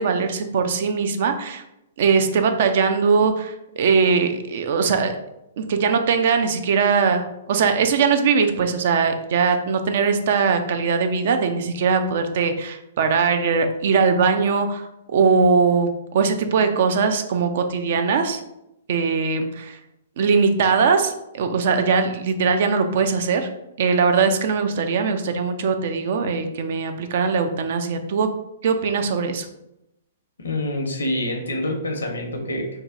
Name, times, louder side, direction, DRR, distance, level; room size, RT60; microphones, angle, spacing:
voice 1, 0.0-1.6 2.0-5.1 5.6-14.8 15.1-18.4 18.9-19.8 20.2-23.5 23.8-28.3 28.6-29.5, right 5 dB, 55° right, 7 dB, 0.3 m, -20 dB
voice 2, 30.4-32.8, left 1 dB, 75° left, 2 dB, 0.7 m, -26 dB
2.7 x 2.1 x 3.6 m, 0.85 s
figure-of-eight pair, 115°, 0 cm